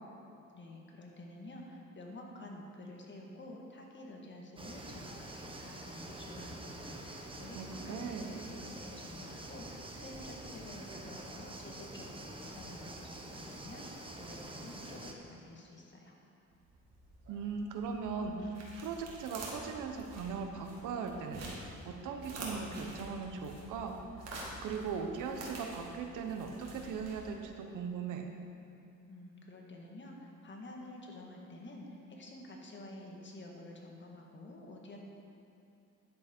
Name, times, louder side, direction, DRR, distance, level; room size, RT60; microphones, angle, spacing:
voice 1, 0.5-16.1 29.1-35.0, left 1 dB, 40° left, 0 dB, 1.7 m, -50 dB
sound 1, 4.6-15.1, right 1 dB, 15° right, 1.1 m, -46 dB
voice 2, 7.5-8.3 17.3-21.4 21.8-23.9 24.6-28.3, right 5 dB, 85° right, 4 dB, 1.0 m, -39 dB
sound 2, 16.5-27.6, right 2 dB, 60° right, 2.3 m, -48 dB
10.5 x 7.8 x 4.4 m, 2.8 s
cardioid pair, 90°, 30 cm